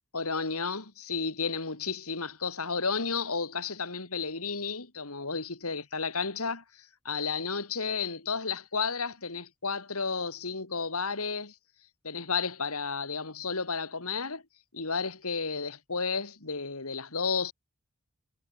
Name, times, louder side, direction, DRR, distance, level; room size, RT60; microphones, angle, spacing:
voice 1, 0.1-6.6 7.1-11.5 12.0-14.4 14.7-17.5, left 4 dB, 75° left, 3.4 m, -32 dB
head